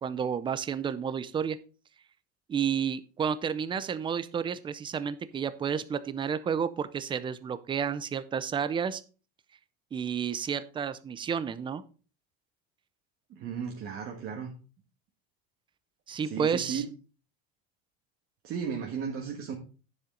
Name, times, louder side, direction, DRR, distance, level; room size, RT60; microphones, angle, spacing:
voice 1, 0.0-1.6 2.5-9.0 9.9-11.8 16.1-16.8, right 7 dB, 15° right, 14 dB, 0.5 m, -31 dB
voice 2, 13.3-14.5 16.3-16.8 18.4-19.6, right 7 dB, 45° right, 0 dB, 1.5 m, -35 dB
10.0 x 7.5 x 3.8 m, 0.36 s
cardioid pair, 160°, 30 cm